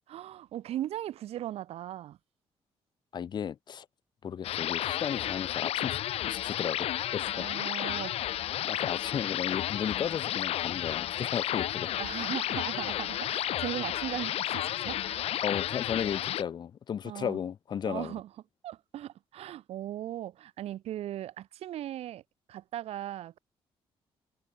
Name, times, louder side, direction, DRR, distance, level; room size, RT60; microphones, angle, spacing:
voice 1, 0.1-2.2 7.3-8.2 12.0-15.4 17.0-17.4 17.8-18.3 18.6-22.2 22.5-23.4, right 12 dB, 80° right, 4.6 m, -38 dB
voice 2, 3.1-3.8 4.2-6.0 6.3-6.9 7.1-7.5 8.7-11.9 15.4-18.1, left 8 dB, 45° left, 1.5 m, -34 dB
sound 1, 4.4-16.4, left 12 dB, 80° left, 5.0 m, -32 dB
cardioid pair, 155°, 10 cm